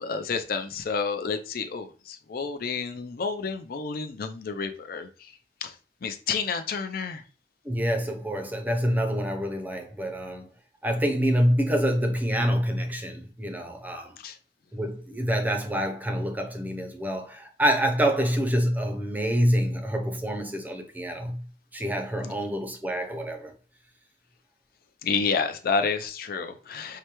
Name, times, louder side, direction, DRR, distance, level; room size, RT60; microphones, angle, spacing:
voice 1, 0.0-5.1 5.6-5.7 6.0-7.2 14.2-14.4 22.2-22.3 25.0-27.0, left 5 dB, 55° left, 0.4 m, -30 dB
voice 2, 7.6-10.5 10.8-14.1 14.7-21.4 21.7-23.5, equal, 10° right, 0.6 m, -26 dB
4.9 x 2.1 x 3.0 m
head